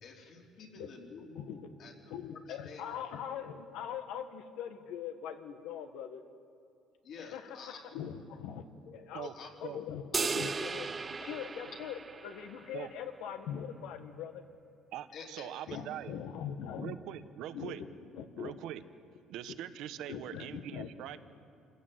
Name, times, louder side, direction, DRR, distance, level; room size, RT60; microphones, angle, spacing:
voice 1, 0.0-1.9 2.3-2.8 7.0-7.8 8.8-9.0 9.2-9.5 11.2-11.3 15.1-15.9, left 5 dB, 50° left, 0 dB, 3.5 m, -49 dB
voice 2, 1.3-1.7 2.1-6.2 7.2-7.6 7.9-8.6 8.9-9.3 9.6-10.9 11.2-14.4 15.7-16.9 17.5-17.8 18.1-18.5 20.1-20.9, left 8 dB, 80° left, 7 dB, 1.6 m, -41 dB
sound 1, 10.1-12.7, right 4 dB, 20° right, 0.4 m, -36 dB
voice 3, 14.9-16.2 16.8-17.8 18.4-18.8 19.3-21.2, right 11 dB, 65° right, 12 dB, 1.0 m, -42 dB
27.0 x 15.5 x 7.8 m, 2.5 s
cardioid pair, 160°, 0 cm